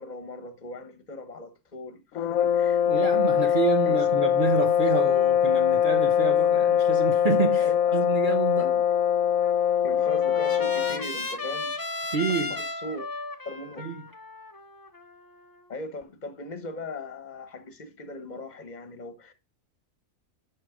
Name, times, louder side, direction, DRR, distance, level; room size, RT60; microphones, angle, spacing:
voice 1, 0.0-4.0 7.6-8.1 8.6-8.8 9.8-11.8 12.5-13.1 13.4-13.9 15.7-19.3, left 2 dB, 35° left, 1.3 m, -39 dB
sound 1, 2.2-11.1, left 9 dB, 85° left, 1.0 m, -22 dB
voice 2, 2.9-8.7 12.1-12.6 13.8-14.0, right 5 dB, 45° right, 0.9 m, -28 dB
Trumpet, 9.4-15.6, left 3 dB, 20° left, 0.8 m, -36 dB
11.0 x 3.9 x 5.0 m
omnidirectional pair, 1.4 m